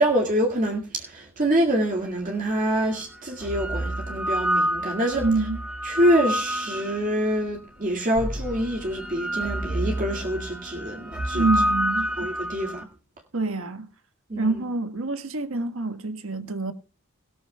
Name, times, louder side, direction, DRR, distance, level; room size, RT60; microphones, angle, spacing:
voice 1, 0.0-5.3 5.8-11.5 12.2-12.9 14.3-14.6, right 1 dB, 40° right, 2.0 m, -25 dB
sound 1, 2.1-2.2 3.1-7.4 8.2-12.8, equal, 5° right, 2.6 m, -28 dB
voice 2, 5.2-5.6 11.3-12.1 13.3-13.9 14.4-16.7, right 3 dB, 75° right, 1.6 m, -26 dB
18.0 x 13.5 x 2.3 m
head